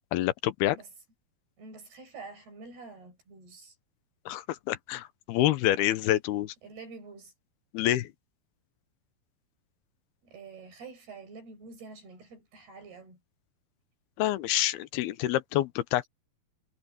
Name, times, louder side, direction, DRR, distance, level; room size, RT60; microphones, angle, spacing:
voice 1, 0.1-0.8 4.3-6.5 7.7-8.1 14.2-16.0, left 14 dB, 85° left, 2.9 m, -27 dB
voice 2, 1.6-3.8 6.6-7.3 10.2-13.2, right 4 dB, 80° right, 9.7 m, -47 dB
omnidirectional pair, 4.5 m